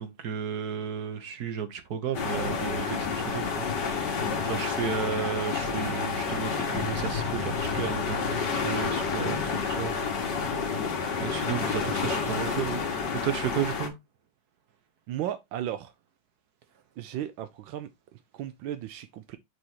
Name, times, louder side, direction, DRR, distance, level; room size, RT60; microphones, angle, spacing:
voice 1, 0.0-9.9 10.3-10.5 11.2-12.8 13.1-13.9, right 7 dB, 60° right, 1.4 m, -33 dB
sound 1, 2.1-13.9, left 5 dB, 65° left, 2.0 m, -29 dB
voice 2, 15.1-15.9 17.0-19.4, right 11 dB, 85° right, 1.4 m, -36 dB
6.3 x 6.1 x 2.9 m
omnidirectional pair, 2.1 m